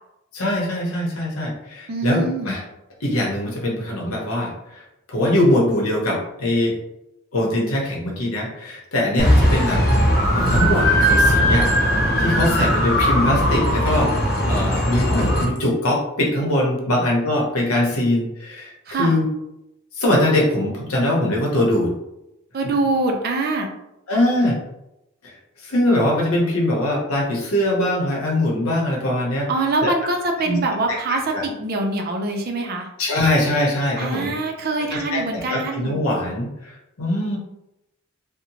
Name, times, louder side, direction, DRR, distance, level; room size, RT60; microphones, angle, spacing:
voice 1, 0.3-2.6 3.0-4.5 5.1-6.7 7.3-9.8 10.3-11.7 12.2-14.1 14.5-19.3 19.9-21.9 24.1-24.6 25.2-25.3 25.6-29.5 29.8-29.9 30.4-30.6 30.9-31.4 33.0-34.3 34.9-37.4, left 1 dB, 90° left, -2 dB, 0.8 m, -22 dB
voice 2, 1.9-2.6 18.9-19.2 22.5-23.7 29.5-32.9 34.0-36.0, right 2 dB, 45° right, 3 dB, 0.4 m, -24 dB
sound 1, 9.2-15.4, equal, 45° left, 0.7 m, -18 dB
2.8 x 2.1 x 2.8 m, 0.88 s
head